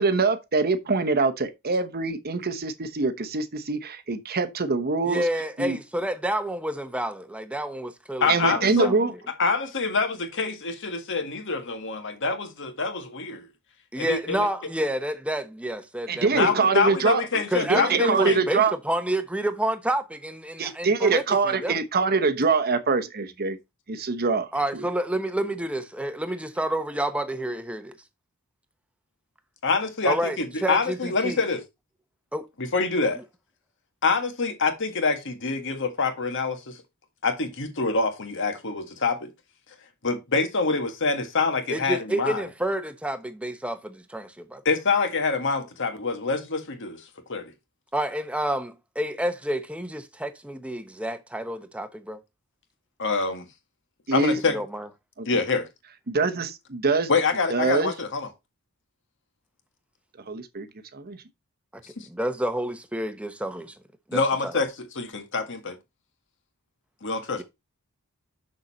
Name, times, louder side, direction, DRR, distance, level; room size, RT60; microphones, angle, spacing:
voice 1, 0.0-5.2 5.6-5.8 8.3-9.1 16.1-18.7 20.6-23.6 23.9-24.9 54.1-54.4 55.2-55.3 56.1-57.1 57.5-57.9 60.3-60.7 60.9-61.2, right 4 dB, 45° right, 1.0 m, -24 dB
voice 2, 5.0-9.0 13.9-16.8 17.5-21.7 24.5-27.9 30.0-31.4 32.3-32.5 33.2-33.3 41.7-44.6 47.9-52.2 54.5-54.9 61.7-63.8 64.1-64.6 67.4-67.5, right 1 dB, 5° right, 0.9 m, -29 dB
voice 3, 8.2-8.9 9.4-13.5 14.0-14.5 16.3-18.4 29.6-31.6 32.6-33.2 34.0-36.8 37.2-39.3 40.0-42.4 44.6-47.0 47.3-47.5 53.0-53.4 54.1-54.6 55.2-55.7 57.1-58.3 62.0-62.1 64.1-65.8 67.0-67.4, left 4 dB, 60° left, 1.8 m, -26 dB
6.6 x 6.6 x 4.3 m
head